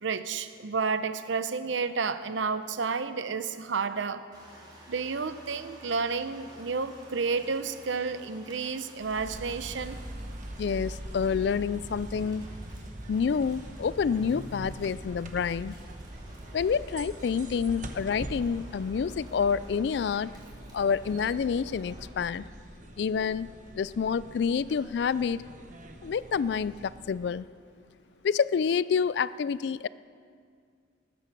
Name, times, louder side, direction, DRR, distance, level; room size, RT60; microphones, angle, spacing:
voice 1, 0.0-4.2 4.9-10.0, right 5 dB, 75° right, 12 dB, 0.7 m, -31 dB
sound 1, 4.3-22.1, right 1 dB, 20° right, 3.2 m, -53 dB
sound 2, 9.0-27.4, right 1 dB, 40° right, 1.0 m, -43 dB
voice 2, 10.6-12.5 13.1-15.8 16.5-20.3 20.7-22.4 23.0-25.4 26.0-27.5 28.2-29.9, left 6 dB, 60° left, 18 dB, 0.3 m, -28 dB
20.0 x 8.8 x 6.0 m, 2.2 s
head